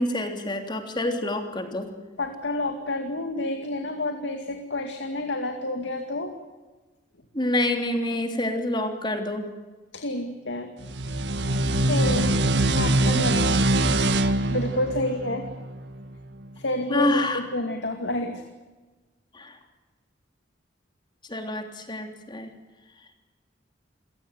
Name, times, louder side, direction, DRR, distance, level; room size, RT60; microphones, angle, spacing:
voice 1, 0.0-1.9 7.3-9.5 16.9-17.4 19.3-19.6 21.3-22.5, left 1 dB, 25° left, 5 dB, 3.4 m, -27 dB
voice 2, 2.2-6.3 9.9-10.7 11.9-12.4 12.8-13.6 14.5-15.4 16.6-18.4, left 1 dB, 85° left, 5 dB, 2.4 m, -29 dB
sound 1, 10.8-16.1, right 2 dB, 75° right, 1.7 m, -23 dB
28.5 x 17.5 x 9.3 m, 1.3 s
head